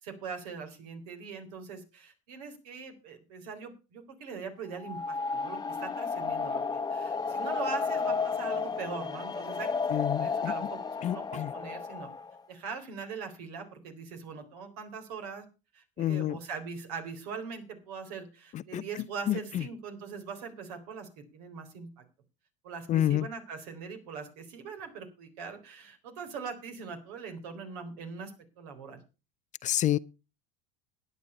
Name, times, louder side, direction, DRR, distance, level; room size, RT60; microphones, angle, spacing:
voice 1, 0.0-12.1 12.5-15.5 15.7-22.0 22.6-29.0, right 5 dB, 70° right, 3.8 m, -42 dB
sound 1, 4.7-12.4, left 5 dB, 20° left, 1.1 m, -33 dB
voice 2, 9.9-10.5 11.0-11.5 16.0-16.4 18.5-18.8 19.3-19.6 22.9-23.3 29.6-30.0, left 12 dB, 35° left, 0.5 m, -28 dB
12.0 x 9.7 x 5.5 m
hypercardioid pair, 90°, 20 cm